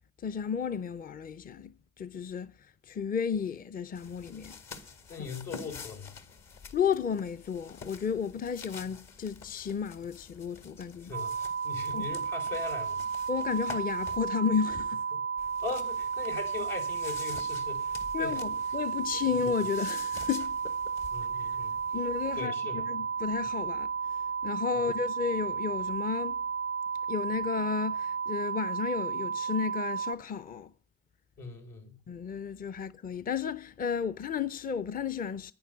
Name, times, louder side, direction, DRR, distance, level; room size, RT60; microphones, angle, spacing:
voice 1, 0.2-4.6 6.7-11.1 11.9-12.1 13.3-15.0 18.1-20.9 21.4-21.6 21.9-26.4 27.1-30.7 32.1-35.5, left 7 dB, 25° left, 0.6 m, -33 dB
sound 1, 3.9-14.4 15.4-22.5, left 4 dB, 55° left, 2.1 m, -48 dB
voice 2, 5.1-6.1 10.8-13.0 15.1-15.2 15.6-18.4 21.1-21.8 22.4-22.8 31.4-32.0, left 4 dB, 70° left, 4.6 m, -40 dB
sound 2, 11.1-30.2, right 6 dB, 90° right, 0.6 m, -33 dB
10.5 x 9.4 x 7.9 m
hypercardioid pair, 55°, 32 cm